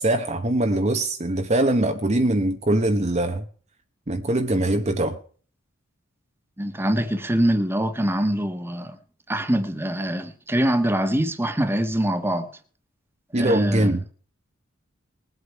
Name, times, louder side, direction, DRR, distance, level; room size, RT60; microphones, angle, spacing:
voice 1, 0.0-3.4 4.1-5.2 13.3-14.1, right 1 dB, 35° right, 1.1 m, -22 dB
voice 2, 6.6-9.0 9.3-12.5 13.3-13.9, right 1 dB, 10° right, 1.4 m, -24 dB
21.0 x 8.2 x 4.6 m
head